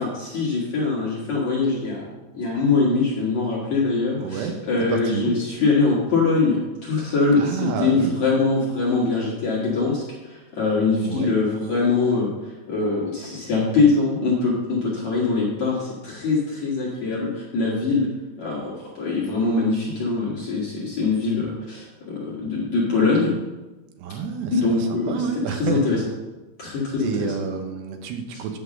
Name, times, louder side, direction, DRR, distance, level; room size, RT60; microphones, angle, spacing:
voice 1, 0.0-2.0 2.3-18.1 18.4-23.3 24.5-25.2 25.5-26.0 26.6-27.1, left 3 dB, 55° left, -6 dB, 2.2 m, -23 dB
voice 2, 4.2-4.6 4.9-5.4 7.3-8.1 11.0-11.3 24.0-25.8 26.7-28.6, right 6 dB, 75° right, 5 dB, 2.8 m, -29 dB
9.5 x 5.9 x 7.4 m, 1.1 s
omnidirectional pair, 5.6 m